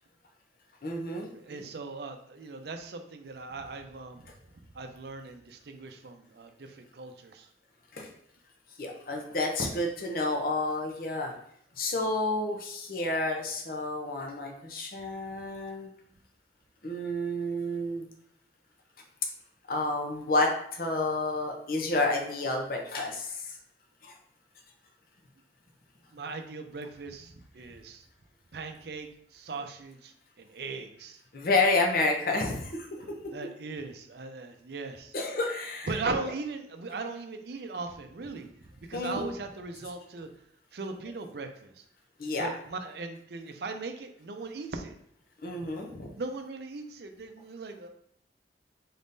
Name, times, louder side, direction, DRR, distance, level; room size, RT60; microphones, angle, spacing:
voice 1, 0.8-1.3 7.9-8.1 8.8-11.3 11.8-15.9 16.8-18.0 19.7-23.6 24.0-24.1 31.3-32.9 35.1-35.9 38.9-39.3 42.2-42.5 45.4-46.1, left 2 dB, 50° left, 2 dB, 0.6 m, -30 dB
voice 2, 1.4-4.2 4.7-7.5 26.1-28.0 28.5-29.1 29.3-30.1 30.4-31.2 33.0-35.1 35.9-38.5 38.9-40.3 40.7-41.7 42.4-44.9 46.1-47.9, right 3 dB, 60° right, 6 dB, 0.5 m, -38 dB
3.9 x 3.6 x 2.6 m, 0.66 s
head